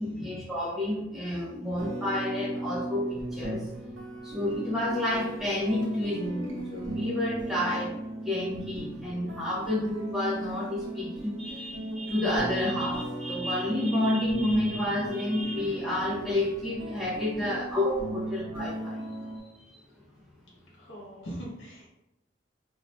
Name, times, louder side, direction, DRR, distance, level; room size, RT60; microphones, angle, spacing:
voice 1, 0.0-3.7 4.2-7.9 8.2-19.1, left 1 dB, ahead, -6 dB, 0.4 m, -30 dB
sound 1, 1.7-19.4, right 1 dB, 75° right, 0.8 m, -37 dB
voice 2, 20.8-21.9, equal, 90° left, -5 dB, 1.0 m, -41 dB
2.4 x 2.4 x 3.2 m, 0.89 s
head